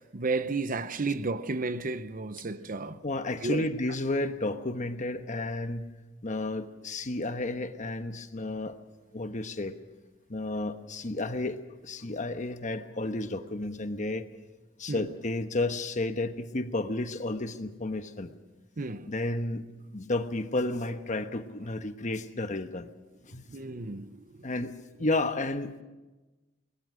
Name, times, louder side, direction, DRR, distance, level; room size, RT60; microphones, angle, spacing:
voice 1, 0.0-3.0 3.4-3.7 14.9-15.1 18.8-19.1 23.5-24.4, right 3 dB, 45° right, 0.8 m, -32 dB
voice 2, 3.0-5.9 6.2-8.8 9.1-9.7 10.3-14.3 14.8-18.3 19.1-19.6 19.9-22.9 23.3-23.4 24.4-25.8, left 2 dB, 40° left, 1.1 m, -32 dB
22.0 x 20.0 x 6.3 m
head